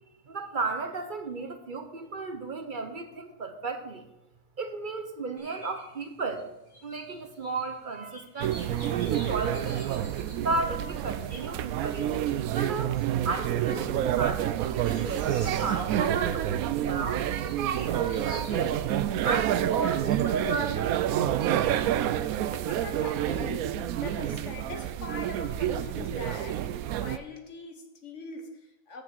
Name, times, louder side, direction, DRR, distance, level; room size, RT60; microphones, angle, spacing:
voice 1, 0.2-4.1 4.6-6.5 6.8-9.8 10.4-12.9 13.2-18.8 19.2-21.0, right 3 dB, 40° right, 7 dB, 0.9 m, -34 dB
sound 1, 5.4-13.7 14.2-14.3 14.6-20.6, left 1 dB, 85° left, 4.2 m, -50 dB
sound 2, 8.4-27.2, right 11 dB, 75° right, 1.0 m, -28 dB
voice 2, 22.5-29.0, left 4 dB, 55° left, 4 dB, 1.6 m, -42 dB
8.4 x 6.6 x 7.3 m, 0.93 s
omnidirectional pair, 1.6 m